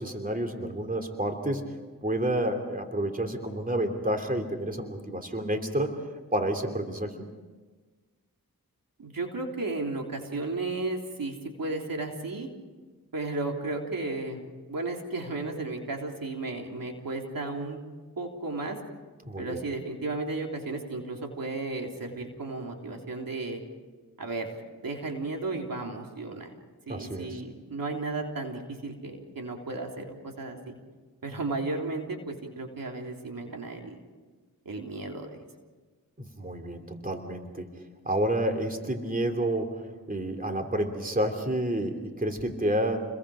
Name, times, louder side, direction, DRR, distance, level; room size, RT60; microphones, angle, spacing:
voice 1, 0.0-1.8 2.0-5.9 6.3-7.3 19.2-19.6 26.9-27.4 36.2-37.7 38.0-39.8 40.1-43.0, right 1 dB, 25° right, 4 dB, 3.0 m, -29 dB
voice 2, 9.0-12.5 13.1-14.4 14.7-17.8 18.2-18.8 19.4-23.6 24.2-26.5 26.9-30.7 31.2-34.0 34.7-35.4, right 3 dB, 70° right, 2 dB, 3.5 m, -34 dB
30.0 x 22.0 x 5.0 m, 1.3 s
cardioid pair, 55°, 35 cm